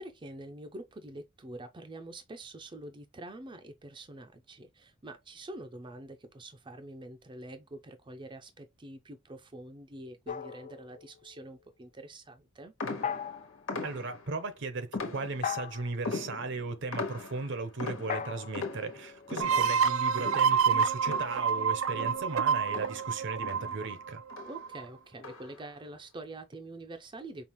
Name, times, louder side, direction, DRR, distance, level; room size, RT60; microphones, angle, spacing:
voice 1, 0.0-12.7 19.3-19.7 24.4-27.4, right 1 dB, 25° right, 0.5 m, -46 dB
sound 1, 10.3-11.4 13.0-13.7 15.4-16.1 18.1-19.9, left 7 dB, 40° left, 0.4 m, -38 dB
sound 2, 12.8-14.4 14.9-15.7 16.0-21.7 21.9-24.0 24.3-24.7 25.2-25.7, left 3 dB, 90° left, 1.4 m, -40 dB
voice 2, 13.8-24.2, right 3 dB, 65° right, 0.8 m, -36 dB
sound 3, 19.4-24.8, right 6 dB, 85° right, 0.4 m, -28 dB
5.4 x 2.4 x 3.0 m
head